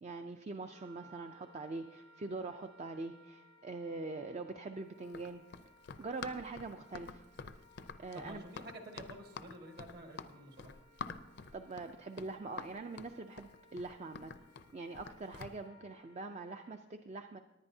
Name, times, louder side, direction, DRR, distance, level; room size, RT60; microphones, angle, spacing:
voice 1, 0.0-5.4 6.0-7.2 8.0-8.4 11.5-14.3 14.7-17.4, right 3 dB, 35° right, 7 dB, 0.4 m, -43 dB
Wind instrument woodwind instrument, 0.7-16.8, equal, 80° right, 3.7 m, -64 dB
Run, 5.0-15.6, left 5 dB, 55° left, 0.5 m, -48 dB
voice 2, 8.1-10.7, right 1 dB, 50° right, 4 dB, 1.6 m, -50 dB
18.5 x 10.5 x 2.7 m, 1.0 s
head